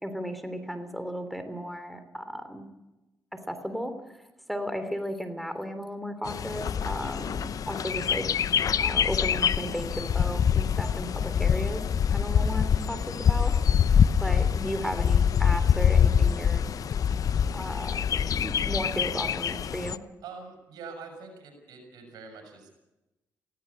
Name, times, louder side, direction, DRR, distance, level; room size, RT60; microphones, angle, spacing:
voice 1, 0.0-2.7 3.3-4.2 4.5-8.3 8.8-11.8 12.1-13.5 14.2-16.6 17.5-20.0, equal, ahead, 8 dB, 3.2 m, -35 dB
Bird, 6.2-20.0, left 8 dB, 60° left, 0.8 m, -25 dB
voice 2, 20.2-22.7, right 5 dB, 80° right, 4 dB, 6.8 m, -44 dB
18.0 x 17.0 x 9.7 m, 1.0 s
supercardioid pair, 60°, 7 cm